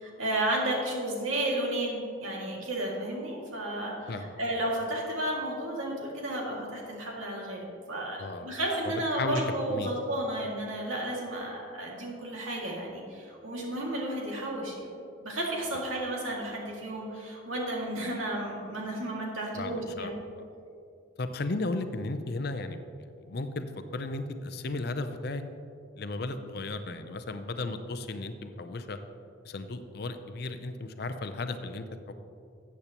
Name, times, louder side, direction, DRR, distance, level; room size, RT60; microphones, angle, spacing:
voice 1, 0.0-14.9 15.2-20.2, right 1 dB, 85° right, -2 dB, 2.2 m, -32 dB
voice 2, 8.2-8.6 8.8-9.4 9.7-9.9 19.6-20.1 21.2-23.7 23.9-25.4 26.0-29.0 29.4-32.1, left 2 dB, 50° left, 9 dB, 0.5 m, -35 dB
13.5 x 8.4 x 3.0 m, 2.5 s
head